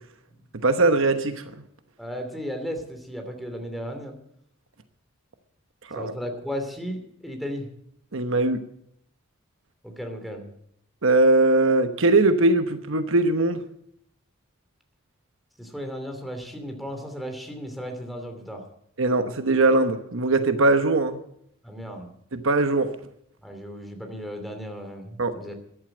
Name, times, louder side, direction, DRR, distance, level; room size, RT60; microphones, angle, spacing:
voice 1, 0.6-1.4 5.9-6.1 8.1-8.6 11.0-13.6 19.0-21.2 22.3-22.9 25.2-25.3, right 2 dB, 65° right, 9 dB, 1.1 m, -20 dB
voice 2, 2.0-4.2 5.9-7.7 9.8-10.5 15.6-18.6 21.6-22.1 23.4-25.6, equal, ahead, 4 dB, 2.8 m, -35 dB
14.0 x 11.5 x 7.8 m, 0.72 s
head